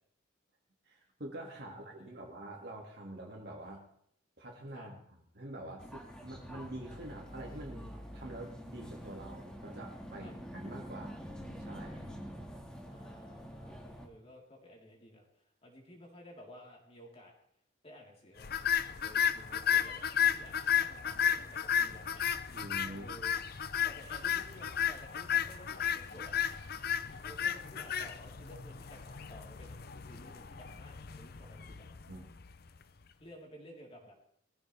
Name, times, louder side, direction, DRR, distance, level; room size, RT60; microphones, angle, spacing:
voice 1, 0.8-3.8 4.4-11.2 11.6-12.2 22.5-23.0 32.1-32.3, right 1 dB, 55° right, -1 dB, 2.4 m, -46 dB
sound 1, 5.8-14.1, equal, 5° left, 2.0 m, -46 dB
voice 2, 12.9-15.3 15.6-17.3 17.8-18.5 18.9-22.2 22.8-23.4 23.8-26.4 27.1-29.8 30.0-31.9 33.2-34.1, equal, 30° left, -2 dB, 4.1 m, -54 dB
sound 2, 18.4-32.8, left 8 dB, 50° left, 0.6 m, -33 dB
21.0 x 15.5 x 3.5 m, 0.67 s
head